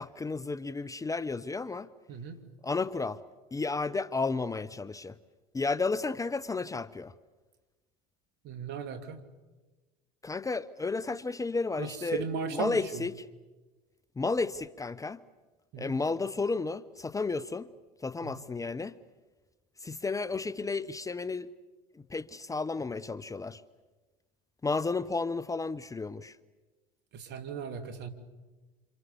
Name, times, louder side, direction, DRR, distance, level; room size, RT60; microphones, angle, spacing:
voice 1, 0.0-1.9 2.6-3.2 3.5-5.2 5.5-7.1 10.2-12.2 12.5-13.2 14.2-15.2 15.8-17.7 18.0-19.0 19.8-21.5 22.1-23.6 24.6-26.4, left 3 dB, 15° left, 0.8 m, -32 dB
voice 2, 8.4-9.2 11.8-13.0 15.7-15.9 18.2-18.4 27.1-28.1, right 6 dB, 55° right, 2.9 m, -37 dB
28.0 x 28.0 x 7.0 m
hypercardioid pair, 85°, 21 cm